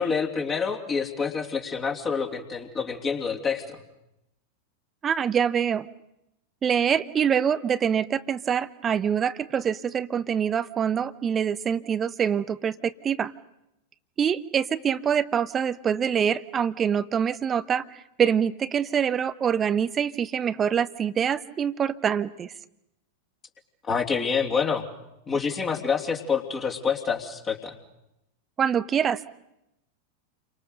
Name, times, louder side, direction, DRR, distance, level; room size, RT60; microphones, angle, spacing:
voice 1, 0.0-3.8 23.8-24.8 25.3-27.8, left 5 dB, 25° left, 1 dB, 3.3 m, -27 dB
voice 2, 5.0-5.9 6.6-13.3 14.2-22.5 28.6-29.3, right 8 dB, 25° right, 16 dB, 0.9 m, -25 dB
30.0 x 25.0 x 6.8 m, 0.85 s
figure-of-eight pair, 90°, 0 cm